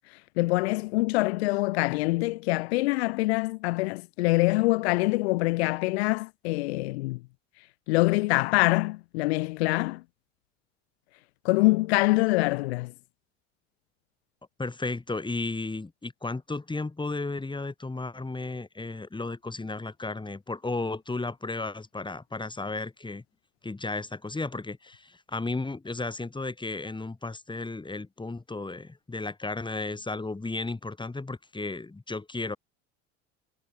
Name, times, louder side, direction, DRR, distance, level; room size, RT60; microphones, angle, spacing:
voice 1, 0.4-7.2 7.9-10.0 11.4-12.9, left 22 dB, 80° left, 1.7 m, -25 dB
voice 2, 14.6-23.2 23.6-32.6, left 3 dB, 15° left, 7.0 m, -34 dB
hypercardioid pair, 80°, 31 cm